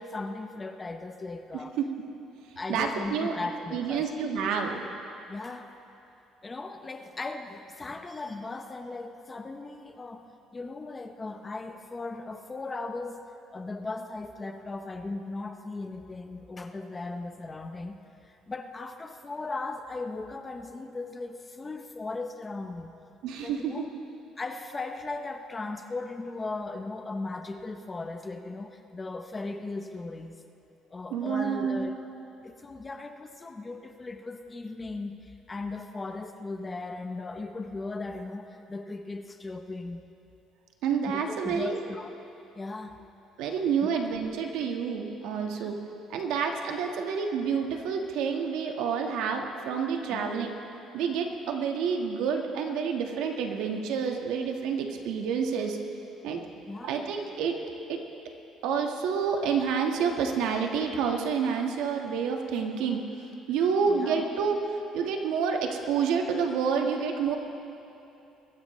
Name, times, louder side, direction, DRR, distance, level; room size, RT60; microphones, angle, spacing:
voice 1, 0.0-1.8 2.6-4.1 5.3-5.7 6.4-10.2 10.5-13.3 13.5-18.0 18.5-22.9 23.4-23.9 24.4-30.4 30.9-31.9 32.4-35.2 35.5-40.1 41.1-42.1 42.5-43.0 45.5-45.7 50.1-50.3 56.7-57.0 63.9-64.3, left 3 dB, 15° left, 6 dB, 0.6 m, -37 dB
voice 2, 2.7-3.3 3.7-4.8 23.2-23.8 31.1-31.9 40.8-41.8 43.4-45.8 46.1-50.5 50.9-55.8 56.2-56.4 56.8-57.6 57.9-58.0 58.6-63.1 63.5-64.6 64.9-67.4, right 6 dB, 80° right, 3 dB, 1.4 m, -28 dB
22.0 x 15.0 x 3.1 m, 2.9 s
cardioid pair, 160°, 0 cm